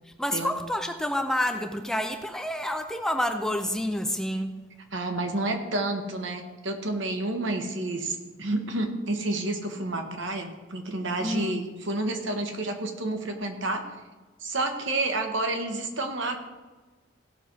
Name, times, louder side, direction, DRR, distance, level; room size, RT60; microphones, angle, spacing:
voice 1, 0.2-4.6 11.2-11.6, left 1 dB, 5° left, 6 dB, 0.5 m, -28 dB
voice 2, 4.9-13.9 14.4-16.4, right 2 dB, 70° right, 4 dB, 1.4 m, -30 dB
16.0 x 6.1 x 4.6 m, 1.3 s
head